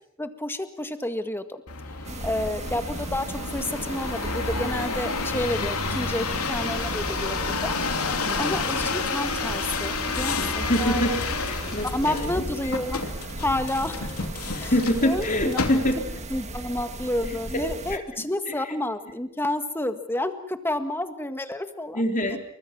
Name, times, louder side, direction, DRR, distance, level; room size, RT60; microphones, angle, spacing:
voice 1, 0.2-1.6 2.0-7.8 8.4-11.2 11.8-13.0 13.4-14.1 14.6-14.7 15.0-15.6 16.3-22.0 22.3-22.4, left 1 dB, 10° left, 9 dB, 1.8 m, -30 dB
sound 1, 1.7-16.2 16.8-17.3, left 4 dB, 85° left, 3.0 m, -30 dB
sound 2, 2.0-18.0, right 2 dB, 30° right, 1.6 m, -36 dB
voice 2, 8.3-8.6 10.7-11.2 11.4-12.5 14.5-16.0 17.9-18.0 21.9-22.4, equal, 35° left, 4 dB, 4.0 m, -25 dB
28.5 x 24.0 x 6.2 m, 0.64 s
head